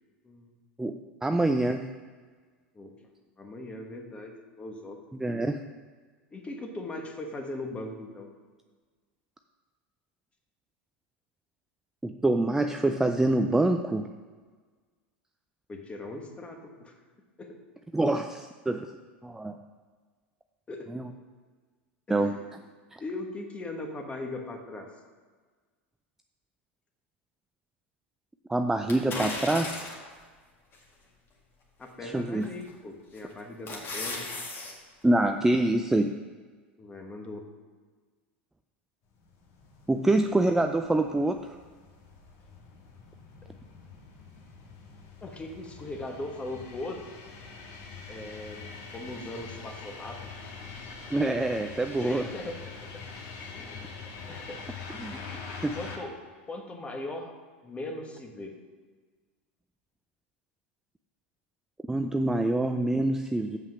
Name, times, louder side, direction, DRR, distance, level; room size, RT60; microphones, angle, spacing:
voice 1, 0.8-1.9 5.2-5.6 12.0-14.1 17.9-18.9 19.2-19.6 20.9-21.1 22.1-22.3 22.9-23.0 28.5-30.0 32.0-32.5 35.0-36.1 39.9-41.4 51.1-52.3 55.0-55.2 55.6-55.8 61.9-63.6, right 2 dB, 5° right, 6 dB, 0.4 m, -26 dB
voice 2, 3.4-5.0 6.3-8.3 15.7-16.9 17.4-17.6 20.7-20.9 22.1-22.5 23.0-24.9 31.8-34.7 36.8-37.4 45.2-47.0 48.1-50.5 52.0-52.8 53.5-54.6 55.1-56.2 56.5-57.4 57.6-58.5, left 2 dB, 20° left, 3 dB, 1.5 m, -39 dB
sound 1, 28.9-30.1 30.7-30.8 32.4-32.7 33.2-34.7 35.1-35.2, left 3 dB, 35° left, 2.0 m, -35 dB
sound 2, 39.2-56.0, left 5 dB, 50° left, 1.6 m, -44 dB
7.7 x 5.6 x 5.7 m, 1.5 s
hypercardioid pair, 90°, 6 cm